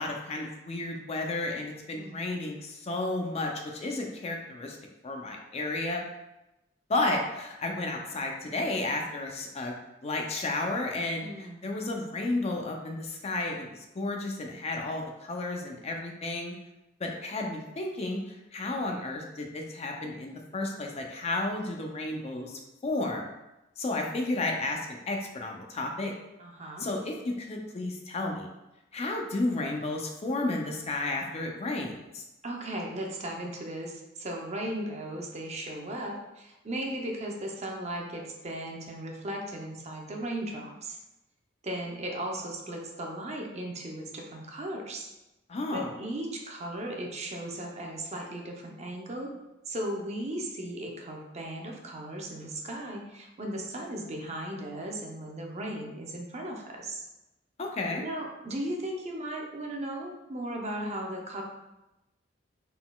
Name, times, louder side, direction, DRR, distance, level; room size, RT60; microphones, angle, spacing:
voice 1, 0.0-4.8 5.0-6.0 6.9-9.8 10.0-16.5 17.0-23.3 23.8-26.1 26.8-28.5 28.9-32.2 45.5-45.9 57.6-58.0, left 2 dB, 35° left, 2 dB, 0.4 m, -32 dB
voice 2, 1.9-2.3 11.2-11.7 26.4-26.9 32.4-41.0 41.6-45.1 45.7-49.3 49.7-57.0 58.0-61.4, right 1 dB, 35° right, 0 dB, 0.6 m, -36 dB
4.0 x 3.8 x 2.3 m, 0.96 s
head